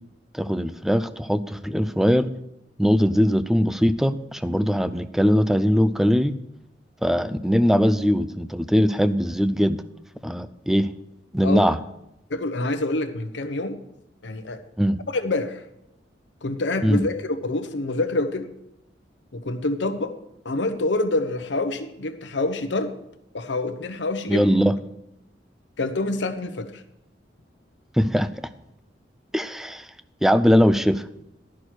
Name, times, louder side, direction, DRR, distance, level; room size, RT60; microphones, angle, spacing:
voice 1, 0.3-2.3 2.8-6.3 7.0-9.8 10.2-10.9 11.3-11.8 14.8-15.0 16.8-17.0 24.3-24.7 27.9-28.3 29.3-29.9 30.2-31.0, equal, ahead, 13 dB, 0.4 m, -20 dB
voice 2, 12.3-13.8 14.2-14.6 15.1-15.6 16.4-18.5 19.3-20.2 20.4-22.9 23.3-24.5 25.8-26.8, left 2 dB, 75° left, 9 dB, 0.9 m, -26 dB
11.5 x 6.2 x 6.2 m, 0.85 s
head